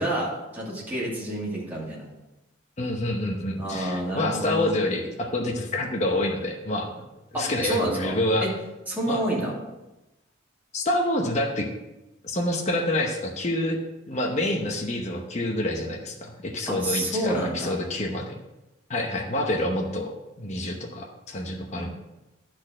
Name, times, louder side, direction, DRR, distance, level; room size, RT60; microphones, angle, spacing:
voice 1, 0.0-2.1 3.6-4.7 7.3-8.5 8.9-9.5 16.7-17.8, right 1 dB, 10° right, -6 dB, 2.4 m, -29 dB
voice 2, 2.8-6.9 7.3-8.5 9.1-9.2 10.7-11.7 12.2-13.8 14.1-18.3 18.9-21.9, left 1 dB, 35° left, 1 dB, 0.9 m, -27 dB
10.5 x 4.4 x 6.2 m, 0.99 s
head